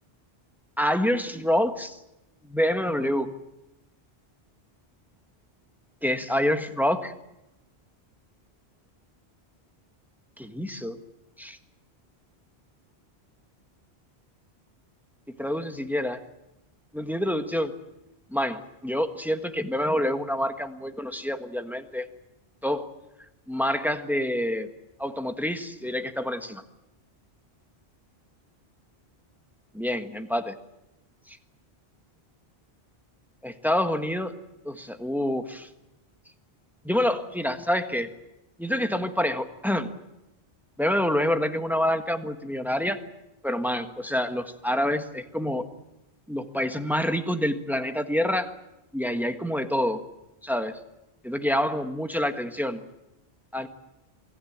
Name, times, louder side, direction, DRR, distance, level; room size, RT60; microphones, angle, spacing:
voice 1, 0.8-2.0 2.5-3.3 6.0-7.1 10.4-11.0 11.4-11.5 15.4-16.2 16.9-17.7 18.3-22.1 22.6-22.9 23.5-24.7 25.0-26.6 29.7-30.6 31.3-31.4 33.4-34.3 34.6-35.7 36.8-38.1 38.6-39.9 40.8-43.0 43.4-45.7 46.3-48.5 48.9-50.0 50.4-50.8 51.2-52.8 53.5-53.7, left 1 dB, ahead, 6 dB, 1.5 m, -27 dB
28.0 x 18.5 x 8.8 m, 0.95 s
omnidirectional pair, 1.1 m